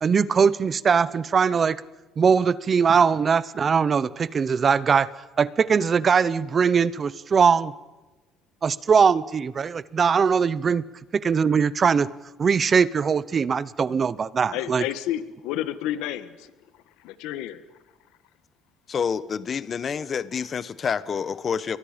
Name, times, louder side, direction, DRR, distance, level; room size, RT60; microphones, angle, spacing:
voice 1, 0.0-1.8 2.2-5.1 5.4-7.7 8.6-10.8 11.2-12.1 12.4-14.8, right 6 dB, 30° right, 18 dB, 0.8 m, -21 dB
voice 2, 14.5-16.5 17.0-17.6, left 12 dB, 90° left, 12 dB, 1.5 m, -30 dB
voice 3, 18.9-21.8, left 6 dB, 35° left, 15 dB, 1.1 m, -28 dB
30.0 x 23.5 x 5.2 m, 1.1 s
cardioid pair, 140°, 0 cm